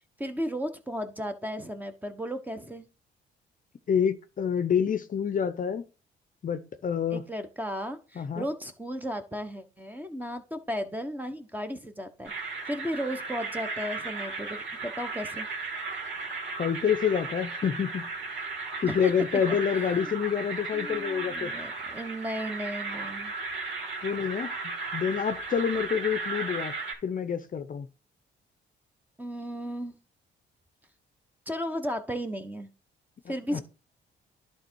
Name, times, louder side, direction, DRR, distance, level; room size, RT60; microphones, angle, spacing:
voice 1, 0.2-2.9 7.1-12.3 12.7-15.5 18.8-19.1 19.5-20.1 20.7-23.3 29.2-30.0 31.5-32.7 33.3-33.6, equal, 10° right, 1.1 m, -35 dB
voice 2, 3.9-5.8 6.4-7.2 8.2-8.4 16.6-18.1 18.8-21.5 24.0-26.8 27.0-27.9 33.2-33.6, left 7 dB, 40° left, 0.7 m, -28 dB
sound 1, 12.2-26.9, right 4 dB, 65° right, 2.7 m, -35 dB
11.0 x 3.7 x 4.6 m
cardioid pair, 90°, 20 cm